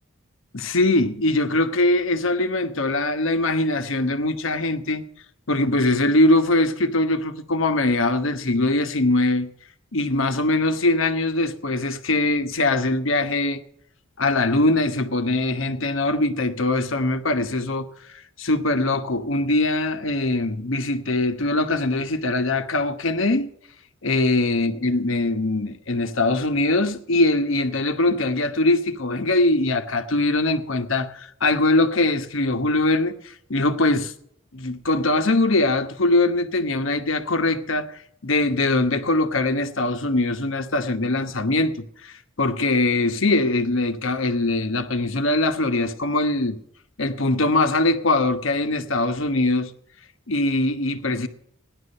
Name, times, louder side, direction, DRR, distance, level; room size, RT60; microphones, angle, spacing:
voice 1, 0.5-5.0 5.5-9.5 9.9-13.6 14.2-17.9 18.4-23.5 24.0-34.1 34.5-46.6 47.0-49.7 50.3-51.3, left 2 dB, 70° left, 1.2 m, -22 dB
16.5 x 11.0 x 5.5 m
head